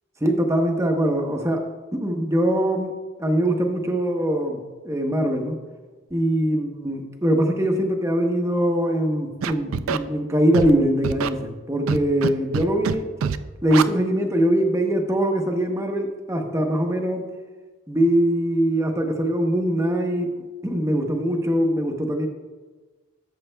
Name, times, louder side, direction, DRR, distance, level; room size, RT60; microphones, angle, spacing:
voice 1, 0.2-1.6 2.0-2.9 3.2-5.6 6.1-13.1 13.6-17.2 17.9-22.3, right 1 dB, 15° right, 3 dB, 0.8 m, -22 dB
Scratching (performance technique), 9.4-10.0 10.5-10.7 11.0-11.3 11.9-12.3 12.5-12.9 13.2-13.4 13.7-13.8, right 6 dB, 90° right, 0.4 m, -24 dB
13.5 x 7.2 x 2.2 m, 1.3 s
head